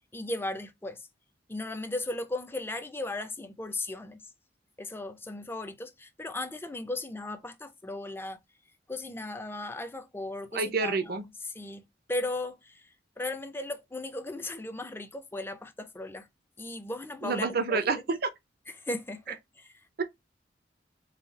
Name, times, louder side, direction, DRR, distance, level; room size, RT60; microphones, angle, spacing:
voice 1, 0.1-1.0 1.5-4.2 4.8-8.4 8.9-12.9 13.2-16.3 16.6-18.0 18.7-19.7, left 2 dB, 15° left, 0.5 m, -36 dB
voice 2, 10.5-11.2 17.2-18.2, right 4 dB, 60° right, 0.6 m, -28 dB
4.1 x 2.3 x 3.9 m
head